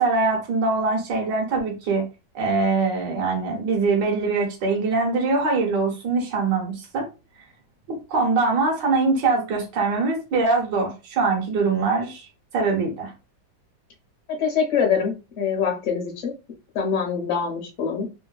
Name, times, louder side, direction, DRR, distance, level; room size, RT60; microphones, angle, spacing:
voice 1, 0.0-2.0 2.3-7.1 8.1-12.3 12.5-13.1, right 3 dB, 65° right, -1 dB, 1.5 m, -23 dB
voice 2, 14.4-16.3 16.7-18.1, left 6 dB, 45° left, 1 dB, 1.2 m, -24 dB
3.4 x 2.2 x 2.2 m, 0.29 s
omnidirectional pair, 2.1 m